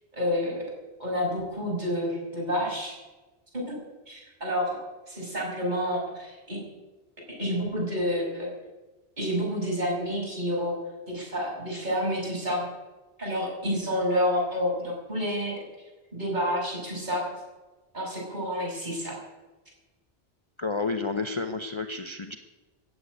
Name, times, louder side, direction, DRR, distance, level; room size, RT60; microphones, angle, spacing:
voice 1, 0.1-0.6 1.0-3.0 3.5-3.7 4.1-4.8 5.1-6.6 7.4-8.5 9.2-10.7 11.1-12.7 13.2-15.6 16.1-17.2 17.9-19.2, equal, 45° right, -2 dB, 6.2 m, -29 dB
voice 2, 20.6-22.4, left 3 dB, 30° left, 6 dB, 0.7 m, -30 dB
14.5 x 8.4 x 9.4 m, 1.2 s
omnidirectional pair, 1.1 m